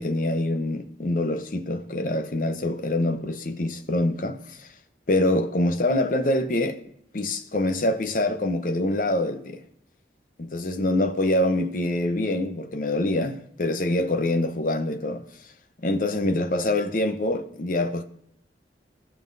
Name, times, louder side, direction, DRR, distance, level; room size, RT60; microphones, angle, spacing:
voice 1, 0.0-4.7 5.1-6.8 7.1-9.6 10.4-15.2 15.8-18.0, left 1 dB, 50° left, 0.8 m, -25 dB
16.5 x 5.6 x 2.7 m
head